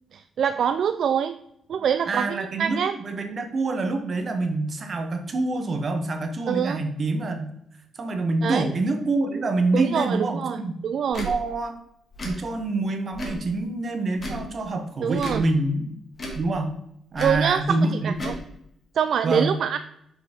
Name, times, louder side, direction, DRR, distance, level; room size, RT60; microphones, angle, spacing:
voice 1, 0.1-1.4 1.7-3.0 6.5-6.8 8.4-8.6 9.7-11.3 15.0-15.4 17.2-17.8 18.0-18.3 19.0-19.8, right 8 dB, 65° right, 11 dB, 0.3 m, -25 dB
voice 2, 2.1-7.5 7.9-10.8 11.2-11.8 12.2-15.9 16.3-16.8 17.1-18.1 19.2-19.6, right 2 dB, 45° right, 6 dB, 1.1 m, -26 dB
Tick / Tick-tock, 11.1-11.3 12.1-12.4 13.1-13.4 14.1-14.5 15.1-15.4 16.1-16.4 17.1-17.4 18.1-18.4, equal, 35° left, 2.1 m, -33 dB
5.9 x 4.8 x 5.1 m, 0.78 s
cardioid pair, 105°, 0 cm